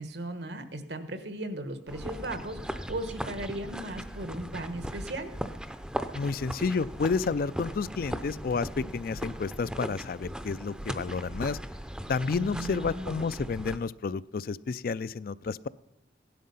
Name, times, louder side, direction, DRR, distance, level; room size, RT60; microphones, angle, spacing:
voice 1, 0.0-5.3 12.3-13.3, right 1 dB, 70° right, 9 dB, 1.4 m, -37 dB
sound 1, 1.9-13.8, equal, 5° right, 0.6 m, -38 dB
voice 2, 6.1-11.6 12.1-15.7, left 4 dB, 55° left, 17 dB, 0.4 m, -30 dB
16.5 x 11.0 x 5.6 m, 0.94 s
head